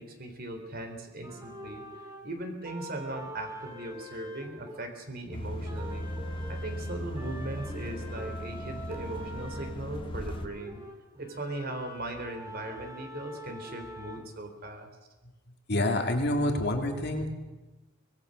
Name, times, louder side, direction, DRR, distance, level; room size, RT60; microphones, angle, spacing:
voice 1, 0.0-1.8 2.2-6.1 6.5-10.8 11.2-14.9, right 1 dB, 50° right, 6 dB, 3.8 m, -39 dB
sound 1, 1.2-5.3 5.6-14.2, equal, 20° right, 3.1 m, -45 dB
sound 2, 5.3-10.5, equal, 25° left, 1.5 m, -37 dB
voice 2, 15.7-17.3, left 1 dB, 55° left, 3 dB, 2.7 m, -27 dB
25.0 x 19.5 x 6.6 m, 1.1 s
head